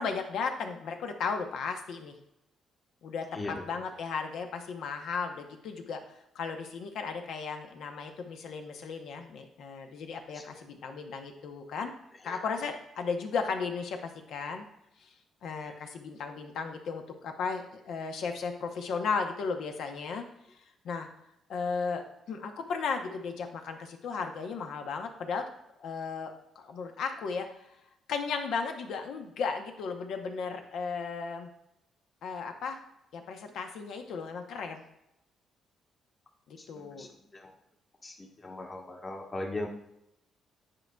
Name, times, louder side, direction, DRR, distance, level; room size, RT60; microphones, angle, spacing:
voice 1, 0.0-2.1 3.0-6.0 6.3-11.9 12.2-14.7 15.0-15.1 15.4-20.3 20.8-21.1 21.5-25.4 25.8-27.5 28.1-31.5 32.2-32.8 33.1-34.8 36.5-37.1, left 5 dB, 75° left, 5 dB, 0.8 m, -35 dB
voice 2, 3.3-3.6 10.3-10.4 12.2-12.4 15.6-15.7 36.6-37.5 38.0-39.7, left 2 dB, 30° left, 1 dB, 1.2 m, -39 dB
9.9 x 4.6 x 2.3 m, 0.83 s
cardioid pair, 90°, 0 cm